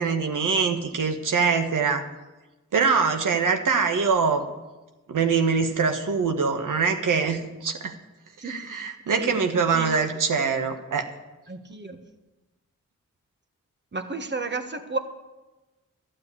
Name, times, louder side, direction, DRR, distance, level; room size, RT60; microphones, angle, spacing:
voice 1, 0.0-2.0 2.7-4.4 5.1-7.9 8.4-11.1, right 5 dB, 80° right, 6 dB, 1.4 m, -23 dB
voice 2, 8.4-8.9 9.2-9.4 9.7-9.9 11.5-12.0 13.9-15.0, right 3 dB, 35° right, 7 dB, 1.5 m, -32 dB
12.5 x 7.7 x 8.5 m, 1.1 s
cardioid pair, 50°, 31 cm